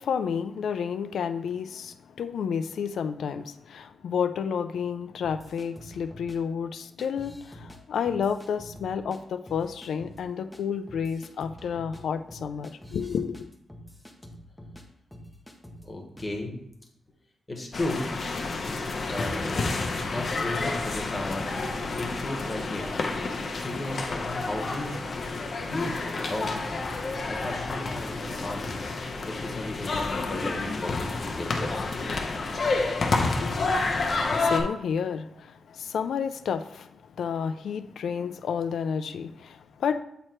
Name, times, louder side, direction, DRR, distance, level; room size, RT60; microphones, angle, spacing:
voice 1, 0.0-13.4 33.4-36.9 37.2-40.0, left 7 dB, 80° left, 9 dB, 0.3 m, -31 dB
sound 1, 5.2-6.4 7.0-7.8 8.0-9.2 9.5-10.2 10.5-10.6 10.9-14.8 15.1-15.9 16.2-16.4, equal, 5° left, 0.7 m, -46 dB
voice 2, 15.8-16.5 17.5-18.0 19.1-19.7 20.1-21.5 22.0-23.0 23.6-25.0 25.7-25.9 26.3-26.6 27.2-28.8 29.2-32.0, left 2 dB, 20° left, 1 dB, 1.1 m, -34 dB
sound 2, 17.7-34.6, left 3 dB, 40° left, 0.7 m, -29 dB
7.6 x 3.1 x 4.4 m, 0.77 s
wide cardioid pair, 165°, 0 cm